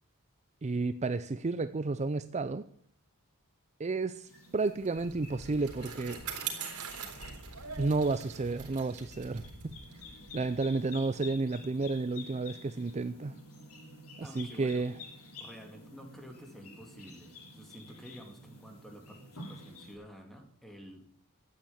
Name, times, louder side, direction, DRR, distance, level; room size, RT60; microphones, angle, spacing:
voice 1, 0.6-2.7 3.8-6.2 7.8-9.7 10.3-13.4 14.2-14.9, right 3 dB, 30° right, 12 dB, 0.5 m, -32 dB
sound 1, 4.3-19.9, left 2 dB, 80° left, 8.0 m, -50 dB
Bicycle, 4.7-11.4, right 6 dB, 85° right, 3.9 m, -43 dB
voice 2, 14.2-14.9 15.4-21.0, equal, ahead, 4 dB, 2.5 m, -50 dB
13.0 x 9.1 x 8.7 m, 0.62 s
head